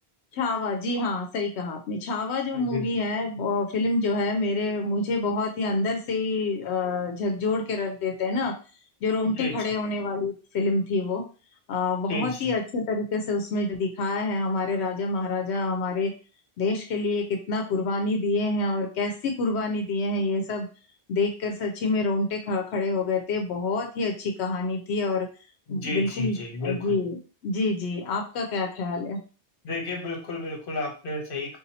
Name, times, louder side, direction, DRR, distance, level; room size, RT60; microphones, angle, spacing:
voice 1, 0.3-8.6 9.0-11.2 11.7-16.1 16.6-20.7 21.1-25.3 25.7-26.4 26.6-27.2 27.4-29.2, left 3 dB, 85° left, 3 dB, 0.9 m, -27 dB
voice 2, 2.5-2.8 9.2-9.5 12.1-12.5 25.7-26.9 29.6-31.6, left 2 dB, 60° left, 2 dB, 1.0 m, -32 dB
2.7 x 2.5 x 4.0 m, 0.35 s
omnidirectional pair, 1.1 m